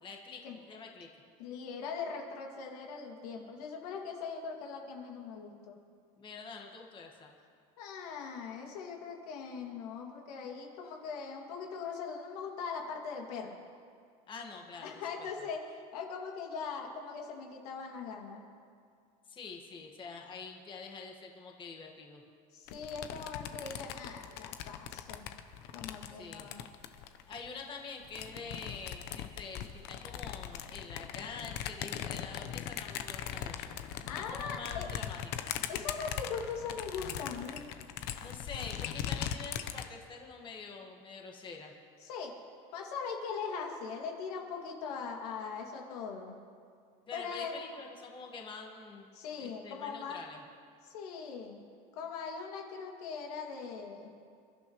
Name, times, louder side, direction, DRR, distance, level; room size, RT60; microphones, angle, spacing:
voice 1, 0.0-0.4 0.7-1.1 6.2-7.3 14.3-14.9 15.2-15.5 19.3-22.2 26.1-26.5 27.3-33.8 34.2-35.5 38.2-41.7 47.1-50.4, left 4 dB, 25° left, 1 dB, 1.7 m, -46 dB
voice 2, 1.4-5.8 7.8-13.6 14.8-18.4 22.5-25.3 25.7-26.6 34.1-34.9 35.7-37.7 42.0-42.4 42.7-46.4 47.1-47.6 49.1-50.2 50.9-51.6 51.9-54.1, left 5 dB, 85° left, 1 dB, 2.5 m, -40 dB
sound 1, 22.7-27.5 28.0-39.9, left 10 dB, 60° left, 0.9 m, -40 dB
28.0 x 12.0 x 3.2 m, 2.2 s
supercardioid pair, 140°, 19 cm